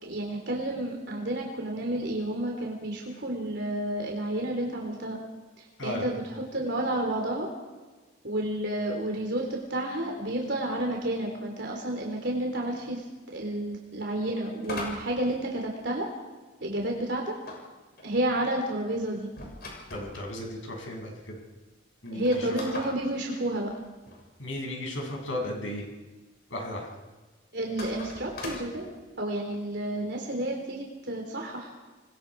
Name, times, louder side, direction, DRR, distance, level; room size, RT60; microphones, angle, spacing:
voice 1, 0.0-5.2 5.8-7.5 8.2-13.0 13.3-16.1 16.6-17.4 18.0-19.3 22.1-23.7 27.5-28.9 29.2-31.7, right 1 dB, 60° right, 0 dB, 3.8 m, -30 dB
sound 1, 14.6-16.2 17.4-20.3 21.0-21.1 21.3-21.4 22.0-24.2 27.6-28.8, left 2 dB, 50° left, 6.6 m, -40 dB
voice 2, 19.9-21.4 22.0-22.5 24.4-25.9 26.5-26.9, left 1 dB, 75° left, 0 dB, 7.1 m, -35 dB
28.5 x 21.0 x 4.9 m, 1.3 s
head